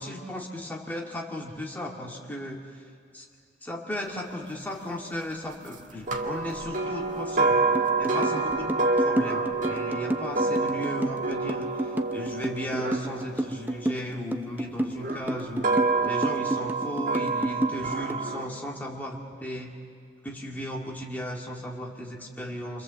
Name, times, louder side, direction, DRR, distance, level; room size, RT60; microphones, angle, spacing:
voice 1, 0.0-2.7 3.1-3.3 3.6-7.6 8.0-15.6 16.0-19.7 20.2-22.8, left 1 dB, 10° left, -1 dB, 1.9 m, -36 dB
sound 1, 6.1-14.2 15.0-18.4, right 3 dB, 40° right, 1.6 m, -28 dB
sound 2, 7.7-18.3, right 1 dB, 10° right, 0.6 m, -30 dB
28.5 x 25.5 x 7.5 m, 2.3 s
head